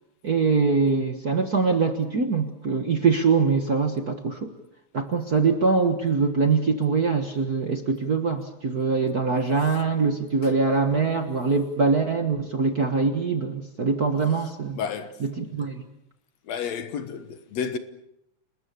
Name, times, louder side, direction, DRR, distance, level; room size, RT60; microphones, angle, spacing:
voice 1, 0.2-4.5 4.9-14.8 15.2-15.8, right 4 dB, 45° right, 1.3 m, -23 dB
voice 2, 14.7-15.2 16.5-17.8, left 7 dB, 65° left, 2.3 m, -31 dB
29.5 x 20.0 x 6.8 m
omnidirectional pair, 3.4 m